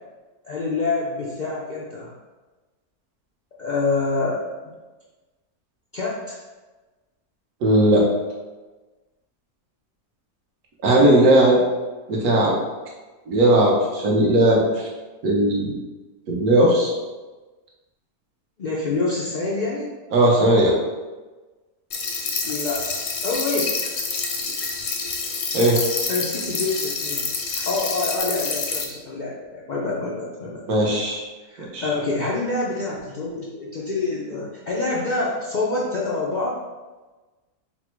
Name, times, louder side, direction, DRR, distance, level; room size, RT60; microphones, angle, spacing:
voice 1, 0.4-2.1 3.6-4.4 5.9-6.4 10.9-11.3 18.6-19.9 22.4-23.9 26.1-27.3 27.7-30.6 31.5-36.6, left 3 dB, 80° left, -6 dB, 0.4 m, -26 dB
voice 2, 7.6-8.0 10.8-11.6 12.1-12.5 13.3-14.6 15.2-15.7 16.3-16.9 20.1-20.8 25.5-25.8 30.7-31.2 31.7-31.9, right 1 dB, 75° right, -2 dB, 1.4 m, -17 dB
sound 1, 21.9-28.8, left 4 dB, 60° left, 0.8 m, -27 dB
4.2 x 2.1 x 4.4 m, 1.2 s
omnidirectional pair, 1.6 m